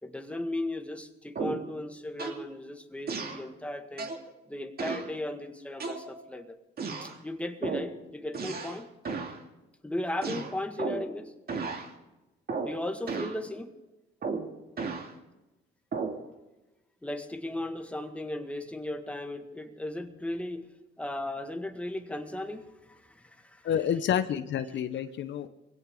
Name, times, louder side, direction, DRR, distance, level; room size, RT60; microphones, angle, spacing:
voice 1, 0.0-4.1 4.5-6.6 7.0-8.9 9.8-11.3 12.6-13.7 17.0-20.7 21.0-23.7, left 1 dB, 5° left, 5 dB, 1.8 m, -36 dB
sound 1, 1.3-1.7 2.2-2.5 3.1-3.4 4.0-4.3 4.8-5.1 5.8-6.3 6.8-7.2 7.6-7.9 8.3-8.8 9.0-9.4 10.2-11.1 11.5-11.9 12.5-12.8 13.1-13.4 14.2-15.1 15.9-16.2, right 4 dB, 50° right, 2.3 m, -34 dB
voice 2, 23.6-25.5, left 9 dB, 65° left, 10 dB, 0.9 m, -29 dB
21.0 x 16.5 x 3.8 m, 1.0 s
cardioid pair, 90°, 20 cm